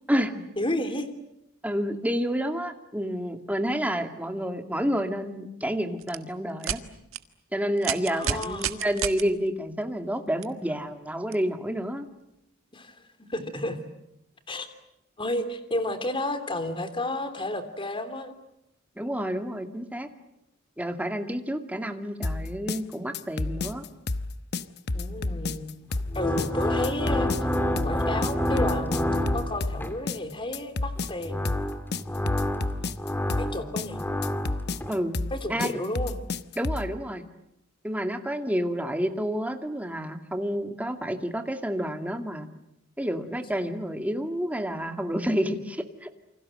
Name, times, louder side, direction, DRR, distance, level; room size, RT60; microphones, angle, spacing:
voice 1, 0.6-1.1 8.1-8.8 12.7-13.0 13.3-13.8 14.5-14.7 15.2-18.3 24.9-25.7 26.1-27.3 27.8-31.5 33.4-34.0 35.3-36.1, left 1 dB, 25° left, 9 dB, 3.1 m, -31 dB
voice 2, 1.6-6.8 7.5-12.1 19.0-20.1 20.8-23.8 34.9-35.2 35.5-35.8 36.6-37.2 37.8-42.5 43.0-46.2, equal, 10° right, 6 dB, 2.2 m, -29 dB
sound 1, 6.0-6.2 6.6-6.8 7.1-7.2 7.8-9.2 10.4-10.5 11.3-11.4, right 8 dB, 90° right, 1.6 m, -29 dB
sound 2, 22.2-36.9, left 3 dB, 55° left, 1.0 m, -31 dB
sound 3, 26.0-30.0 31.0-35.0, left 1 dB, 10° left, 2.5 m, -28 dB
28.5 x 25.5 x 7.8 m, 0.84 s
head